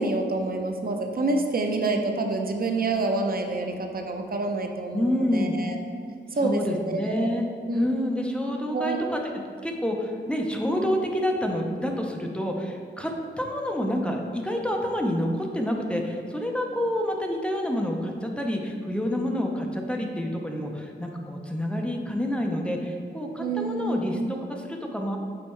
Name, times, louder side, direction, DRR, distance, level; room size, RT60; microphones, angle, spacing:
voice 1, 0.0-5.8 6.3-7.3 7.7-7.9 8.7-9.0 23.4-24.3, right 2 dB, 50° right, 4 dB, 0.6 m, -27 dB
voice 2, 4.9-5.6 6.4-7.5 7.7-9.2 9.6-13.1 13.4-25.2, equal, 5° left, 1 dB, 0.7 m, -28 dB
6.4 x 4.2 x 4.4 m, 2.4 s
wide cardioid pair, 125°, 20 cm